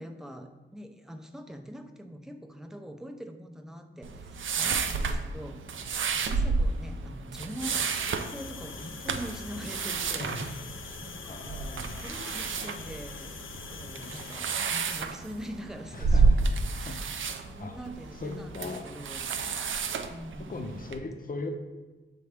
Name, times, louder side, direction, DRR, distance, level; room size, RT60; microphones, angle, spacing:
voice 1, 0.0-5.6 6.1-7.8 8.3-10.7 11.0-13.4 13.7-16.3 16.7-19.7 20.1-20.6, equal, ahead, 4 dB, 0.6 m, -43 dB
sound 1, 4.0-21.0, right 4 dB, 75° right, 0.5 m, -31 dB
sound 2, 7.6-14.4, left 6 dB, 75° left, 0.5 m, -44 dB
voice 2, 11.3-12.1 15.9-16.5 16.8-17.8 18.2-18.9 19.8-19.9 20.5-21.5, left 3 dB, 45° left, 6 dB, 0.7 m, -39 dB
7.0 x 4.2 x 3.4 m, 1.2 s
wide cardioid pair, 80°, 20 cm